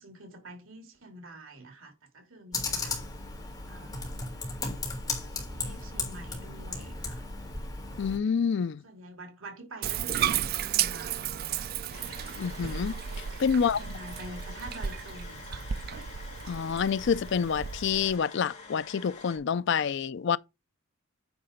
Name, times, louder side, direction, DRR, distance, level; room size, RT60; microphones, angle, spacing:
voice 1, 0.0-3.0 3.7-4.1 5.2-7.3 8.8-11.7 13.5-15.7, right 1 dB, 80° right, 3.0 m, -47 dB
Computer keyboard, 2.5-8.2, left 3 dB, 20° left, 3.3 m, -35 dB
voice 2, 8.0-8.8 12.4-13.9 16.5-20.4, left 6 dB, 60° left, 0.4 m, -28 dB
Bathtub (filling or washing), 9.8-18.2, right 9 dB, 50° right, 0.4 m, -34 dB
sound 1, 11.9-19.4, left 3 dB, 35° left, 3.3 m, -47 dB
9.5 x 4.2 x 5.1 m
head